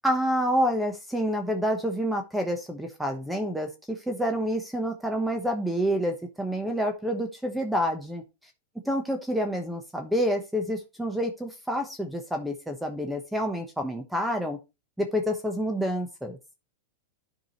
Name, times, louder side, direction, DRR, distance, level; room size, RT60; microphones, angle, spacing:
voice 1, 0.0-8.2 8.9-14.6 15.0-16.4, equal, 5° right, 4 dB, 1.1 m, -28 dB
11.5 x 4.8 x 3.1 m, 0.27 s
hypercardioid pair, 115°, 0 cm